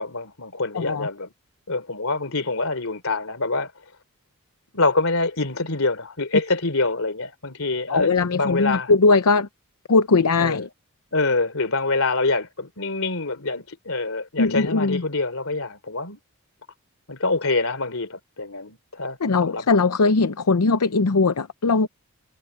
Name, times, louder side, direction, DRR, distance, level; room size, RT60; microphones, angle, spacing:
voice 1, 0.0-1.3 1.7-3.7 4.7-8.9 10.4-10.7 11.1-16.2 17.1-19.7, left 3 dB, 65° left, 3.6 m, -25 dB
voice 2, 0.7-1.1 7.9-9.5 9.9-10.7 14.4-15.0 19.2-21.9, left 3 dB, 85° left, 0.7 m, -20 dB
head